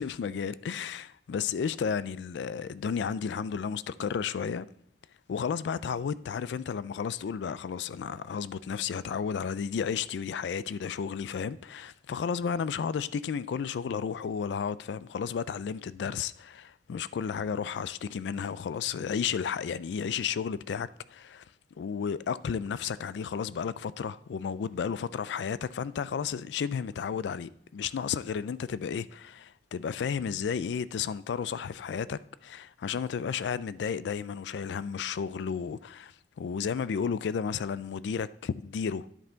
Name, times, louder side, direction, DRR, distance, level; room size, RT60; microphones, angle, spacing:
voice 1, 0.0-4.7 5.3-21.4 21.8-39.1, left 6 dB, 70° left, 0.3 m, -33 dB
10.0 x 5.5 x 3.9 m
head